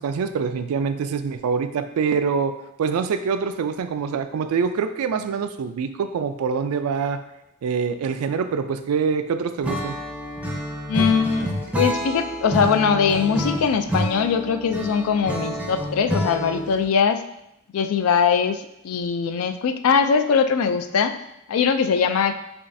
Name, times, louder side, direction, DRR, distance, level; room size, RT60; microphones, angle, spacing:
voice 1, 0.0-7.2 7.6-10.0, right 6 dB, 80° right, 10 dB, 0.3 m, -25 dB
Acoustic guitar / Strum, 9.6-16.8, equal, 5° right, 0.5 m, -28 dB
voice 2, 10.9-17.2 17.7-21.1 21.5-22.4, left 6 dB, 70° left, 9 dB, 0.3 m, -21 dB
7.0 x 2.4 x 2.6 m, 0.83 s
head